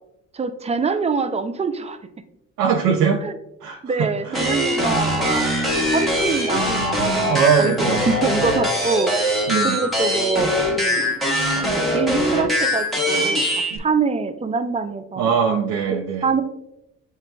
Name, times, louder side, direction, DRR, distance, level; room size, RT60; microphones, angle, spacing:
voice 1, 0.3-2.0 3.2-3.3 3.8-9.1 9.6-11.1 11.5-15.3 15.9-16.4, right 4 dB, 20° right, 9 dB, 0.4 m, -25 dB
voice 2, 2.6-3.2 3.6-4.6 7.3-8.1 9.5-9.8 13.7-13.8 15.2-16.3, right 6 dB, 80° right, 1 dB, 0.6 m, -21 dB
sound 1, 4.3-13.8, equal, ahead, 1.1 m, -22 dB
7.3 x 2.9 x 2.3 m, 0.84 s
cardioid pair, 90°, 30 cm